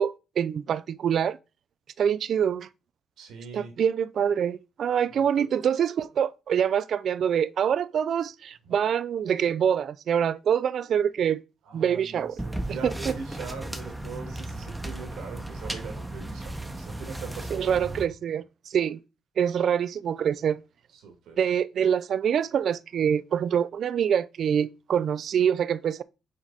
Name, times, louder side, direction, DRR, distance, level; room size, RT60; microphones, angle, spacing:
voice 1, 0.0-1.4 2.0-2.7 3.5-11.4 11.7-12.4 12.8-13.1 17.5-19.0 19.4-20.6 21.4-26.0, right 8 dB, 60° right, 0.3 m, -25 dB
voice 2, 3.2-3.7 5.4-5.5 11.6-17.7 20.9-21.4, right 5 dB, 85° right, 1.8 m, -41 dB
sound 1, 12.4-18.1, right 1 dB, 10° right, 0.8 m, -35 dB
6.0 x 3.8 x 4.1 m
cardioid pair, 90°, 0 cm